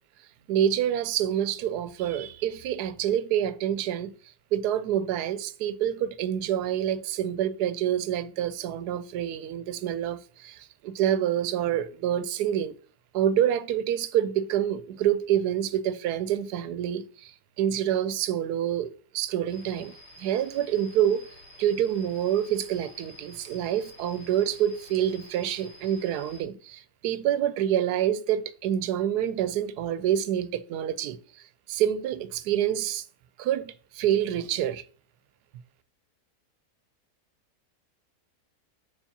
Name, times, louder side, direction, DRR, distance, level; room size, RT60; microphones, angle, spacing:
voice 1, 0.5-4.1 4.5-12.7 13.1-19.9 20.2-21.3 21.6-31.2 31.7-33.0 33.4-34.8, right 10 dB, 85° right, 1.1 m, -27 dB
sound 1, 19.5-26.4, left 1 dB, 40° left, 2.6 m, -50 dB
7.1 x 5.6 x 2.7 m
omnidirectional pair, 1.6 m